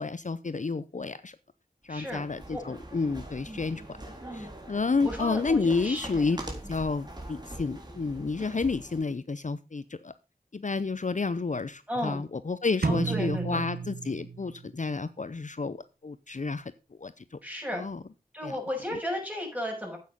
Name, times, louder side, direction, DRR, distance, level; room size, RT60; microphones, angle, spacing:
voice 1, 0.0-1.4 1.8-3.8 4.3-10.1 10.5-16.7 17.0-17.4 17.7-18.0 18.4-18.6, left 4 dB, 55° left, 13 dB, 0.6 m, -30 dB
voice 2, 1.9-2.2 2.5-2.6 3.5-3.6 4.2-4.5 5.0-6.2 11.9-12.2 12.8-13.6 17.4-17.8 18.3-20.0, equal, 10° right, 1 dB, 6.4 m, -35 dB
sound 1, 1.9-9.1, right 1 dB, 25° right, 3.7 m, -43 dB
sound 2, 12.8-14.7, right 4 dB, 85° right, 1.0 m, -31 dB
9.4 x 8.6 x 5.3 m, 0.31 s
wide cardioid pair, 50°, 16 cm